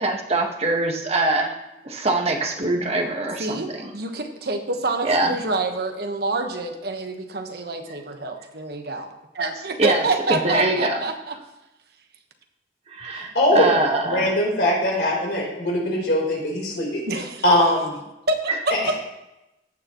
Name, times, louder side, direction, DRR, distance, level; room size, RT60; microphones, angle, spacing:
voice 1, 0.0-1.5 1.8-3.9 5.0-5.4 9.8-11.0 12.9-14.4 18.5-18.6, right 2 dB, 35° right, 1 dB, 1.5 m, -23 dB
voice 2, 3.4-9.1 9.3-11.3 17.1-17.4 18.3-18.4 18.7-18.8, right 2 dB, 60° right, 5 dB, 1.3 m, -27 dB
voice 3, 13.1-13.7 14.0-17.0 17.4-18.0, left 1 dB, 70° left, -3 dB, 4.0 m, -21 dB
15.0 x 9.3 x 3.1 m, 0.94 s
head